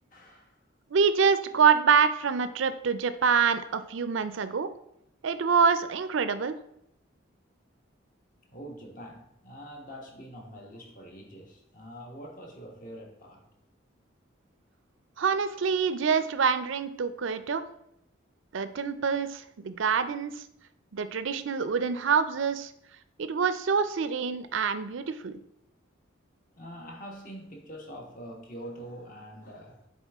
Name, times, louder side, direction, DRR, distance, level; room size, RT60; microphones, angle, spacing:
voice 1, 0.1-0.6 8.5-13.4 26.6-29.9, equal, 40° left, 0 dB, 1.2 m, -44 dB
voice 2, 0.9-4.7 5.2-6.5 15.2-17.6 18.5-20.4 20.9-22.7 23.2-25.4, right 6 dB, 70° right, 12 dB, 0.5 m, -26 dB
7.2 x 4.3 x 3.5 m, 0.77 s
head